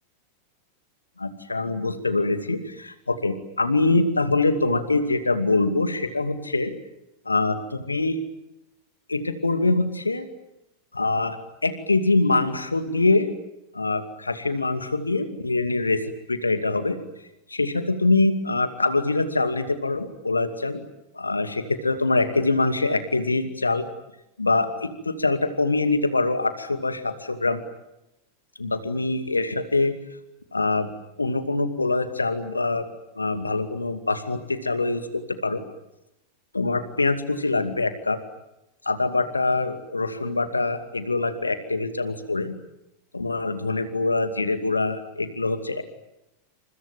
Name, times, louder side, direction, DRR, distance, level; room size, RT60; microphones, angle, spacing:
voice 1, 1.2-6.7 7.3-8.2 9.1-10.3 10.9-13.3 13.7-17.0 17.5-20.8 21.1-23.8 24.4-27.6 28.6-29.9 30.5-30.9 31.2-32.8 33.2-35.6 36.5-38.2 38.9-42.5 43.1-45.8, left 3 dB, 80° left, 9 dB, 2.4 m, -24 dB
29.5 x 26.5 x 7.4 m, 0.89 s
figure-of-eight pair, 90°, 0 cm